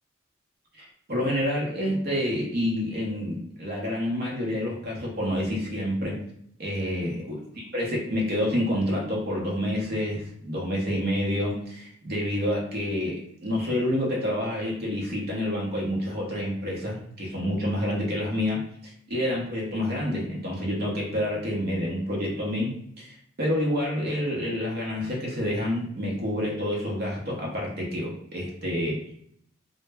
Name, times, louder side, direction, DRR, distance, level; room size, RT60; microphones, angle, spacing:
voice 1, 0.8-6.2 6.6-29.0, left 1 dB, 45° right, -3 dB, 0.7 m, -28 dB
2.1 x 2.0 x 3.3 m, 0.69 s
head